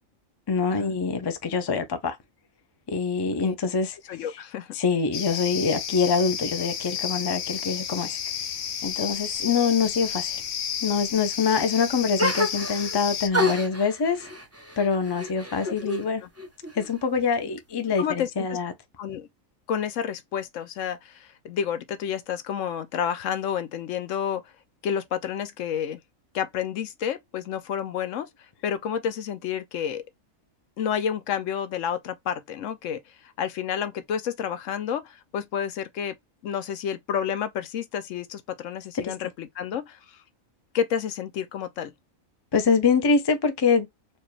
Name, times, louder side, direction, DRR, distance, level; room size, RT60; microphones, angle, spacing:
voice 1, 0.5-2.2 2.9-4.0 4.7-8.2 8.8-10.4 10.8-14.3 14.8-16.2 16.7-18.7 39.0-39.1 42.5-43.9, left 5 dB, 40° left, 0.3 m, -25 dB
voice 2, 4.1-4.7 15.7-15.8 16.0-16.3 18.0-18.6 19.0-19.3 19.7-24.4 24.8-26.0 26.3-28.3 28.6-30.0 30.8-36.2 36.4-40.2 40.7-41.9, left 8 dB, 70° left, 1.0 m, -30 dB
sound 1, 5.1-13.3, left 8 dB, 90° left, 1.1 m, -32 dB
sound 2, 12.2-13.0 13.3-16.1 16.4-17.2, left 1 dB, 15° right, 0.7 m, -29 dB
4.5 x 2.4 x 3.1 m
omnidirectional pair, 1.4 m